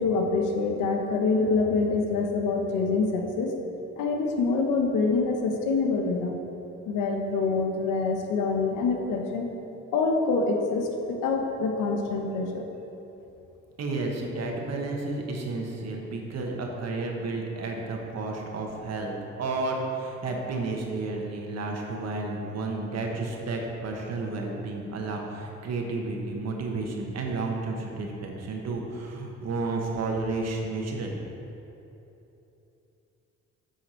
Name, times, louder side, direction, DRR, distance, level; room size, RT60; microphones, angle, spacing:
voice 1, 0.0-3.5 4.0-6.3 6.9-9.4 9.9-12.6, left 4 dB, 90° left, 2 dB, 1.0 m, -26 dB
voice 2, 13.8-19.1 19.4-31.2, right 3 dB, 60° right, 1 dB, 1.3 m, -31 dB
8.0 x 5.7 x 4.3 m, 3.0 s
cardioid pair, 90°, 30 cm